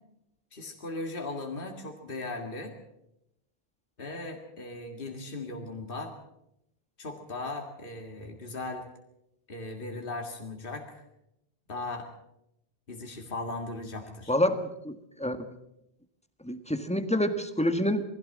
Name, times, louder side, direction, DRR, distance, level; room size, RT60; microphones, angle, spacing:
voice 1, 0.5-2.7 4.0-6.1 7.0-8.8 9.5-11.0 11.7-12.1 12.9-14.3, left 2 dB, 60° left, 3 dB, 2.2 m, -38 dB
voice 2, 14.3-15.4 16.4-18.0, left 1 dB, 5° left, 8 dB, 1.6 m, -28 dB
21.5 x 16.0 x 7.5 m, 0.83 s
omnidirectional pair, 1.0 m